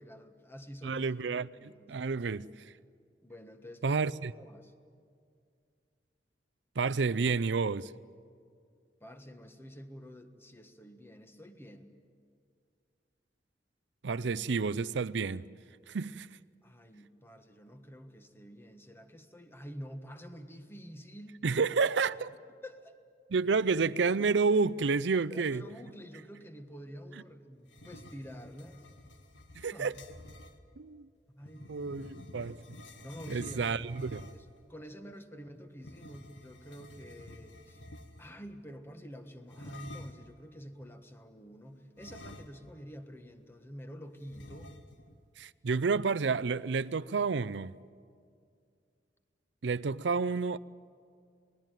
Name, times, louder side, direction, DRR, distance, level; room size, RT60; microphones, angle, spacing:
voice 1, 0.0-1.1 1.3-2.0 3.2-4.0 4.3-4.7 9.0-11.9 16.6-21.4 22.6-22.9 25.1-28.8 29.7-29.9 31.3-31.9 33.0-33.7 34.3-37.8 38.2-44.8, equal, 15° left, 1.4 m, -48 dB
voice 2, 0.8-2.5 3.8-4.3 6.8-7.9 14.0-15.5 15.9-16.3 21.4-22.3 23.3-25.6 29.5-29.9 30.8-31.1 31.7-32.6 33.3-34.3 45.4-47.8 49.6-50.6, right 4 dB, 70° right, 0.5 m, -30 dB
sound 1, 27.7-30.6 31.4-34.6 35.8-38.4 39.5-40.3 42.0-42.9 43.2-43.3 44.3-45.1, left 1 dB, 85° left, 1.5 m, -50 dB
27.0 x 19.5 x 9.2 m
head